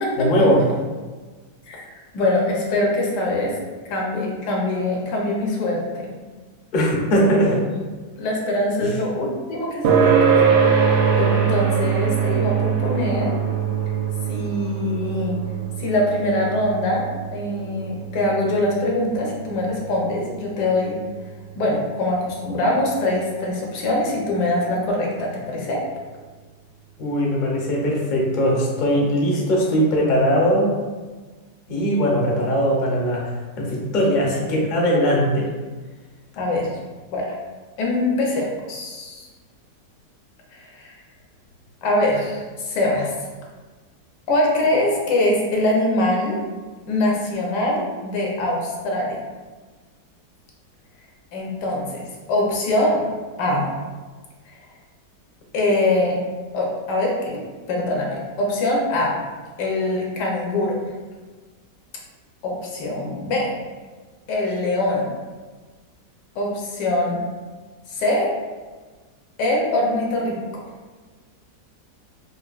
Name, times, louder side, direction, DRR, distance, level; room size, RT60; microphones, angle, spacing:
voice 1, 0.2-0.6 6.7-7.6 27.0-30.7 31.7-33.2 33.6-35.5, equal, 55° left, -3 dB, 0.5 m, -20 dB
voice 2, 2.1-3.5 3.9-6.1 7.3-7.8 8.2-10.2 11.2-13.3 14.3-15.4 15.8-17.0 17.3-21.0 21.6-25.8 36.4-36.7 37.1-37.3 37.8-39.3 40.5-40.9 41.8-43.1 44.3-46.4 46.9-49.2 51.3-53.0 53.4-53.7 55.5-56.2 56.5-57.4 57.7-59.2 59.6-60.8 62.4-63.6 64.3-65.1 66.3-67.2 67.9-68.3 69.4-70.4, left 1 dB, 75° left, -2 dB, 1.4 m, -23 dB
sound 1, 9.8-24.8, right 7 dB, 75° right, 0.8 m, -24 dB
5.0 x 2.5 x 2.4 m, 1.3 s
omnidirectional pair, 1.9 m